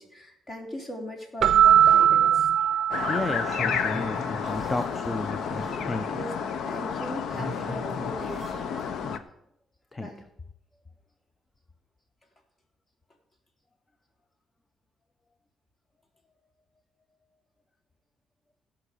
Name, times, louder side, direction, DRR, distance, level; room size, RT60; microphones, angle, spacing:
voice 1, 0.0-2.5 4.4-4.5 6.1-6.3 6.7-8.5 10.0-10.2, left 1 dB, 35° left, 1 dB, 3.7 m, -39 dB
Keyboard (musical), 1.4-3.8, right 10 dB, 65° right, 0.4 m, -20 dB
sound 1, 1.6-9.2, left 1 dB, ahead, 6.0 m, -41 dB
sound 2, 2.9-9.2, left 7 dB, 70° left, 0.8 m, -31 dB
voice 2, 3.1-6.1 9.0-9.2 9.9-10.1, left 2 dB, 20° left, 10 dB, 0.8 m, -33 dB
16.5 x 5.9 x 6.6 m, 0.76 s
cardioid pair, 90°, 0 cm